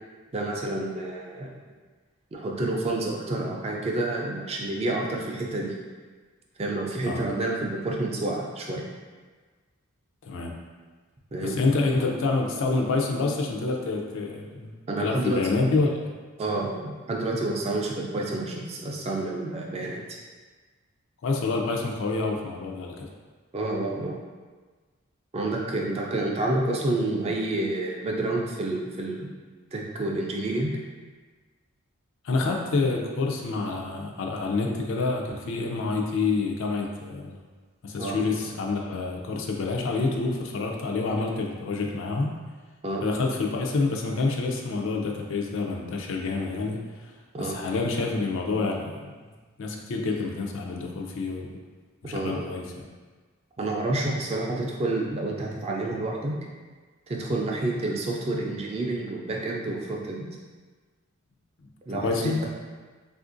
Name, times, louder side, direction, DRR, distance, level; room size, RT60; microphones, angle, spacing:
voice 1, 0.3-1.5 2.3-5.7 6.6-8.9 11.3-11.6 14.9-15.4 16.4-20.2 23.5-24.2 25.3-29.3 29.7-30.8 38.0-38.2 42.8-43.1 47.3-47.6 52.1-52.5 53.6-56.3 57.1-60.2 61.9-62.3, right 2 dB, 30° right, -1 dB, 0.4 m, -29 dB
voice 2, 10.2-10.6 11.4-14.7 15.0-16.0 19.8-19.9 21.2-23.1 32.2-37.4 37.8-42.4 43.0-46.8 47.4-49.1 49.6-51.6 52.0-52.9 61.9-62.5, left 3 dB, 65° left, 1 dB, 0.4 m, -27 dB
3.5 x 2.5 x 2.5 m, 1.4 s
head